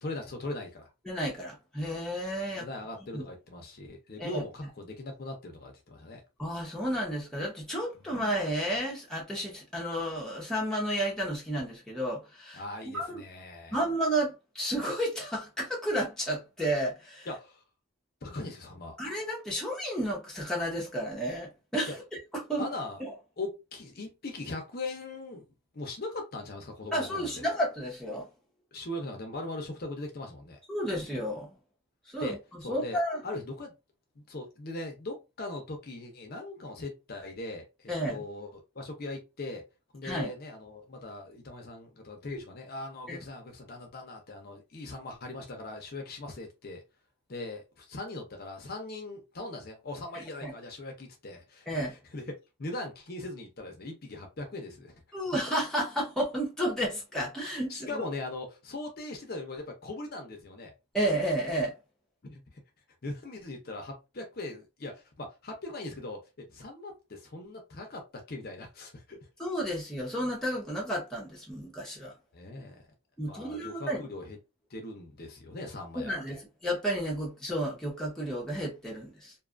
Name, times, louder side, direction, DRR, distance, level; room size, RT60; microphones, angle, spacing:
voice 1, 0.0-0.9 2.5-6.2 7.9-8.1 12.5-13.8 17.3-17.6 18.2-19.0 22.6-23.0 23.4-25.4 25.7-27.4 28.7-30.6 32.2-32.4 32.6-33.7 34.2-39.6 39.9-46.8 47.3-52.2 52.6-55.0 57.7-60.7 62.2-62.6 63.0-69.2 72.3-72.9 73.2-74.4 74.7-76.1, left 2 dB, 45° left, 0.6 m, -40 dB
voice 2, 1.1-2.7 3.1-3.2 4.2-4.4 6.4-13.2 13.7-17.3 19.0-21.9 22.3-22.7 23.0-23.1 26.9-28.3 30.7-31.6 32.1-33.2 37.9-38.2 40.0-40.3 43.1-43.2 50.1-50.5 51.7-52.0 55.1-58.0 60.9-61.7 69.4-72.1 73.2-74.0 75.9-79.3, right 1 dB, 5° left, 0.8 m, -32 dB
2.6 x 2.4 x 2.4 m
head